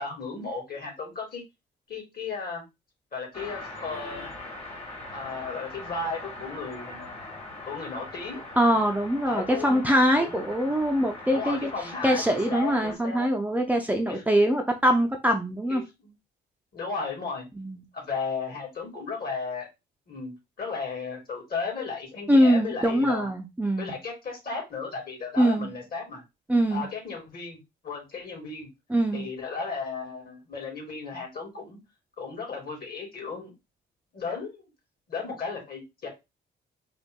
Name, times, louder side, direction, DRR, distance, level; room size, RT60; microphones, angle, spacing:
voice 1, 0.0-1.4 1.9-2.6 3.1-4.3 5.1-7.1 7.6-8.4 9.3-9.8 10.2-10.4 11.3-13.3 14.1-14.2 15.7-16.1 16.7-17.5 17.9-19.7 20.1-23.3 23.8-26.2 26.7-27.6 27.8-28.7 29.1-31.8 32.2-33.5 34.1-34.7 35.1-36.1, left 4 dB, 50° left, 0 dB, 2.6 m, -35 dB
sound 1, 3.3-12.9, left 2 dB, 30° left, 1.5 m, -41 dB
voice 2, 8.6-15.8 17.6-17.8 22.3-23.9 25.4-25.7 26.5-26.9 28.9-29.3, equal, 10° right, 2 dB, 0.6 m, -23 dB
3.9 x 2.5 x 3.7 m, 0.23 s
cardioid pair, 90°, 20 cm